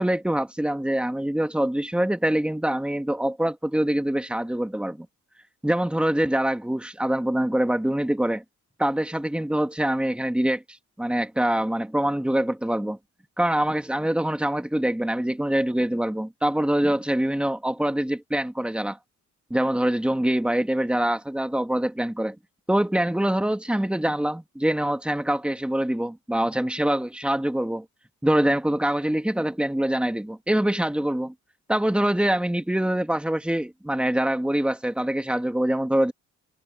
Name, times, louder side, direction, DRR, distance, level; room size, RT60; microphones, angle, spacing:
voice 1, 0.0-5.1 5.6-8.4 8.8-10.6 11.0-13.0 13.4-19.0 19.5-22.4 22.7-27.8 28.2-31.3 31.7-36.1, right 1 dB, 5° right, 2.2 m, -24 dB
cardioid pair, 90°, 30 cm